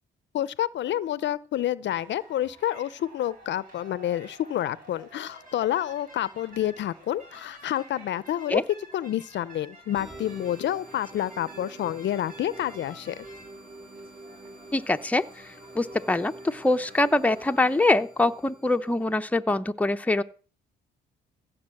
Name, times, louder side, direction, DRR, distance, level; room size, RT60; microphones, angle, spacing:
voice 1, 0.3-8.6 8.9-13.3, left 12 dB, 65° left, 0.6 m, -29 dB
sound 1, 1.9-17.7, right 1 dB, 45° right, 7.7 m, -51 dB
sound 2, 9.9-19.3, right 2 dB, 25° right, 7.5 m, -47 dB
voice 2, 14.7-20.2, left 2 dB, 5° left, 0.8 m, -24 dB
15.5 x 6.0 x 7.7 m
cardioid pair, 90°, 20 cm